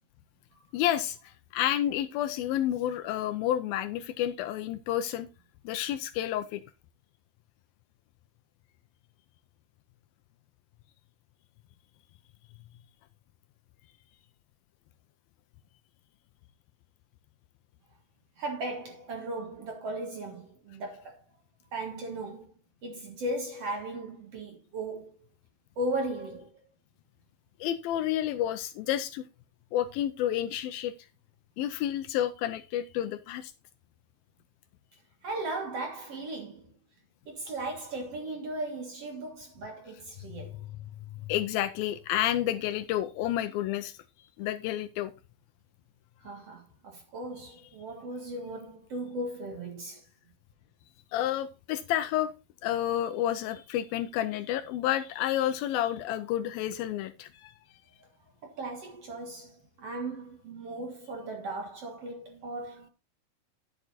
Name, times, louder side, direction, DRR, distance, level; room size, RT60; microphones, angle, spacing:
voice 1, 0.7-5.3 5.6-6.6 27.6-29.3 29.7-31.0 31.6-33.5 41.1-44.0 44.4-45.1 51.1-52.3 52.6-57.5, left 12 dB, 80° left, 2.3 m, -30 dB
voice 2, 18.4-21.2 21.7-22.5 22.8-25.2 25.8-26.6 35.2-36.7 37.3-40.6 46.2-50.0 58.4-62.9, right 2 dB, 50° right, 2.1 m, -37 dB
11.0 x 6.9 x 4.1 m
omnidirectional pair, 4.5 m